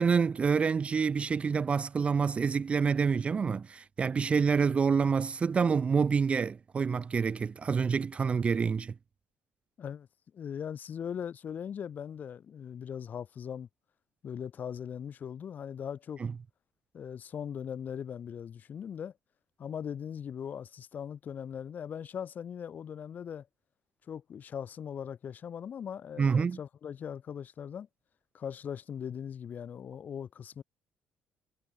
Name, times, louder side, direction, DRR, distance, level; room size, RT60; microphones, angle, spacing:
voice 1, 0.0-8.9 16.2-16.3 26.2-26.6, right 5 dB, 25° right, 0.6 m, -27 dB
voice 2, 10.3-13.7 14.2-16.2 16.9-19.1 19.6-23.5 24.1-27.9 28.3-30.6, left 8 dB, 40° left, 1.9 m, -40 dB
cardioid pair, 145°, 5 cm